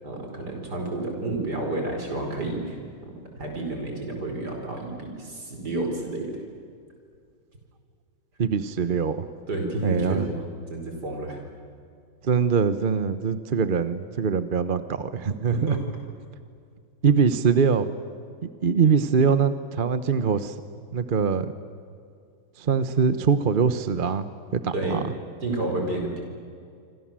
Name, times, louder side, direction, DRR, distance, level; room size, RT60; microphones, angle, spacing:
voice 1, 0.0-2.8 3.4-6.4 9.5-10.4 10.7-11.4 15.5-15.8 24.7-25.0 25.4-26.2, right 2 dB, 55° right, 2 dB, 5.4 m, -30 dB
voice 2, 8.4-9.3 9.8-10.3 12.2-15.8 17.0-17.9 18.6-20.5 20.9-21.5 22.6-25.0, right 6 dB, 40° right, 12 dB, 0.8 m, -23 dB
27.0 x 26.0 x 7.6 m, 2.3 s
omnidirectional pair, 2.1 m